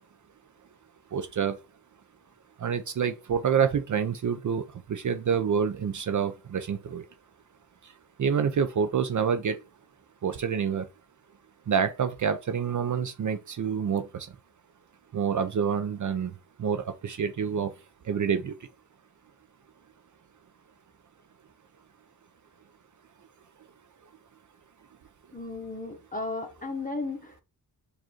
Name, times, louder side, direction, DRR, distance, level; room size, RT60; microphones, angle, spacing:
voice 1, 1.1-1.6 2.6-7.0 8.2-9.6 10.2-10.9 11.7-14.3 15.1-16.3 16.6-17.7 18.1-18.5, right 7 dB, 50° right, 0.5 m, -27 dB
voice 2, 25.3-27.4, left 3 dB, 20° left, 1.0 m, -35 dB
4.9 x 2.5 x 4.3 m
wide cardioid pair, 110°, 39 cm